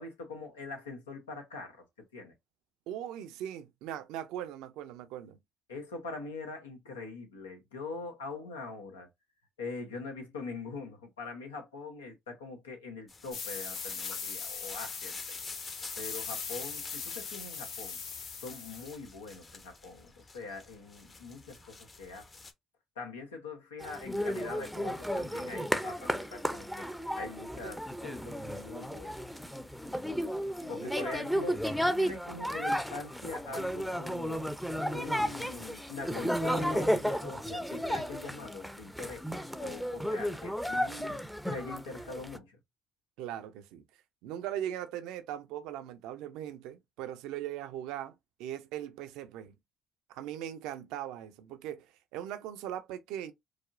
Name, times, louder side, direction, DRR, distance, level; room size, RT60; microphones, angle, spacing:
voice 1, 0.0-1.8 2.1-2.3 5.7-9.1 9.6-15.4 16.0-18.0 18.4-20.1 20.3-22.3 23.0-29.3 30.7-34.5 34.9-42.6, left 3 dB, 90° left, 0.9 m, -43 dB
voice 2, 2.9-5.4 30.6-30.9 43.2-43.8 44.2-49.5 50.1-53.3, right 11 dB, 75° right, 0.5 m, -40 dB
sound 1, 13.1-22.5, left 3 dB, 35° left, 0.8 m, -49 dB
sound 2, 13.3-18.9, left 6 dB, 65° left, 1.1 m, -40 dB
sound 3, 23.8-42.4, equal, ahead, 0.6 m, -33 dB
4.8 x 2.1 x 2.5 m
hypercardioid pair, 50°, 0 cm